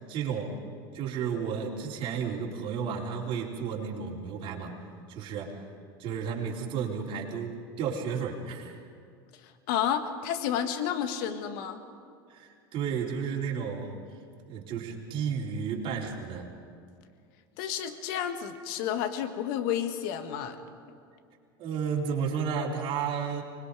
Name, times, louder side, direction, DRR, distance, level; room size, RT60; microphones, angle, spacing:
voice 1, 0.1-0.5 0.9-4.7 5.1-5.6 6.0-8.8 12.3-14.0 14.5-16.5 21.6-23.4, right 6 dB, 45° right, -3 dB, 4.1 m, -32 dB
voice 2, 9.7-11.8 17.6-20.6, left 9 dB, 65° left, 8 dB, 1.7 m, -31 dB
25.0 x 21.0 x 5.0 m, 2.4 s
hypercardioid pair, 95°, 12 cm